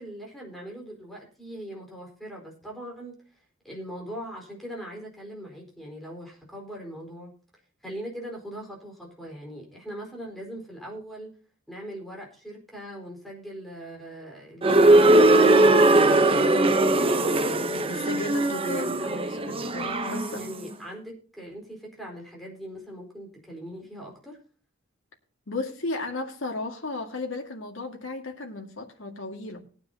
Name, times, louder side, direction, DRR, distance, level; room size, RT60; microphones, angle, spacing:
voice 1, 0.0-3.2 3.6-7.3 7.8-11.3 11.7-19.1 19.8-24.4, equal, ahead, -1 dB, 4.4 m, -40 dB
sound 1, 14.6-20.5, right 2 dB, 30° right, 0.8 m, -20 dB
voice 2, 17.9-20.4 25.5-29.6, left 2 dB, 75° left, 2 dB, 2.0 m, -34 dB
20.0 x 9.5 x 2.8 m, 0.39 s
head